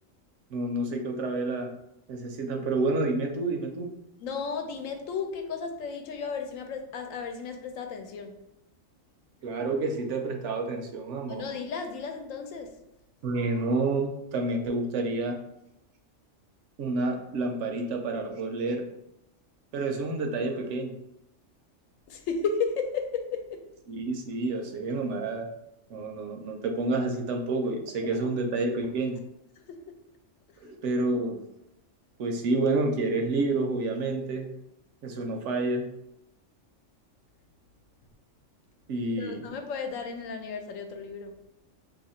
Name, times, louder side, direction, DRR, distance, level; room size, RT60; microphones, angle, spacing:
voice 1, 0.5-1.7 2.1-3.9 9.4-11.4 13.2-15.4 16.8-18.8 19.7-20.9 23.9-25.5 25.9-29.2 30.6-31.4 32.2-34.5 35.0-35.9 38.9-39.5, right 2 dB, 70° right, 3 dB, 0.9 m, -29 dB
voice 2, 4.2-8.3 11.3-12.7 22.1-23.6 29.7-29.9 39.2-41.3, left 5 dB, 90° left, 5 dB, 1.0 m, -34 dB
2.8 x 2.7 x 4.2 m, 0.84 s
omnidirectional pair, 1.3 m